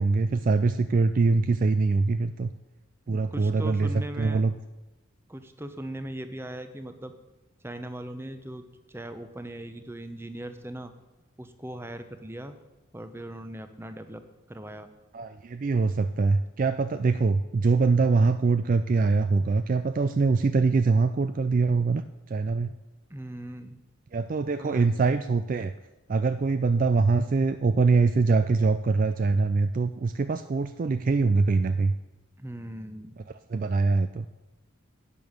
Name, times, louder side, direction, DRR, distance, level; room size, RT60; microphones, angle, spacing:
voice 1, 0.0-2.5 3.1-4.5 15.1-22.0 22.3-22.7 24.1-25.7 26.1-31.9 33.5-34.3, right 4 dB, 40° right, 10 dB, 0.3 m, -23 dB
voice 2, 3.1-4.4 5.3-7.1 7.6-10.9 11.4-12.5 12.9-14.2 14.5-14.9 23.1-23.8 24.6-25.0 32.4-33.2, right 1 dB, 10° right, 9 dB, 0.7 m, -39 dB
10.5 x 9.1 x 6.5 m, 1.1 s
head